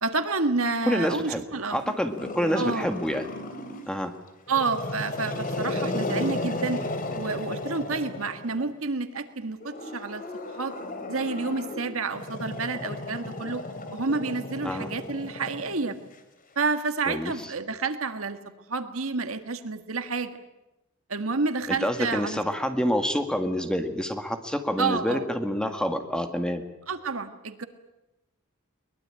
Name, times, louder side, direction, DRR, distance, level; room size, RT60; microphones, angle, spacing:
voice 1, 0.0-2.0 2.5-2.9 4.5-6.8 7.1-10.7 11.1-13.6 13.9-16.0 16.5-20.4 21.1-22.4 24.8-25.3 26.9-27.6, right 4 dB, 70° right, 9 dB, 1.7 m, -29 dB
voice 2, 0.9-1.4 1.7-3.3 3.9-4.1 14.6-14.9 17.1-17.3 21.7-26.6, equal, 5° left, 6 dB, 1.9 m, -27 dB
Growling, 2.2-3.9 4.5-8.6 9.6-16.1, left 2 dB, 40° left, 2.9 m, -34 dB
22.5 x 21.0 x 8.9 m, 0.99 s
head